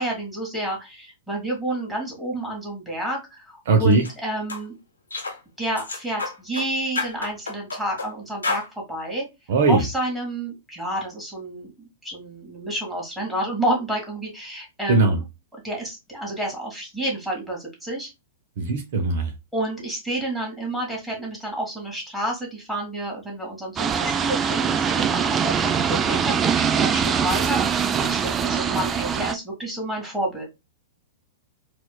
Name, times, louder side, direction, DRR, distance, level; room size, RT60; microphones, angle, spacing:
voice 1, 0.0-4.8 5.6-9.3 9.7-11.7 12.0-15.2 15.6-18.1 19.5-30.4, right 1 dB, 5° right, -3 dB, 1.8 m, -29 dB
voice 2, 3.7-4.0 9.5-9.8 14.9-15.2 18.6-19.3, right 3 dB, 55° right, 5 dB, 0.6 m, -19 dB
sound 1, 3.9-4.1 4.5-4.6 5.1-5.4 5.8-6.7 7.0-8.1 8.4-8.7, left 3 dB, 80° left, 0.9 m, -29 dB
sound 2, 23.8-29.3, right 7 dB, 20° right, 0.3 m, -23 dB
4.3 x 2.4 x 2.2 m, 0.23 s
figure-of-eight pair, 105°, 0 cm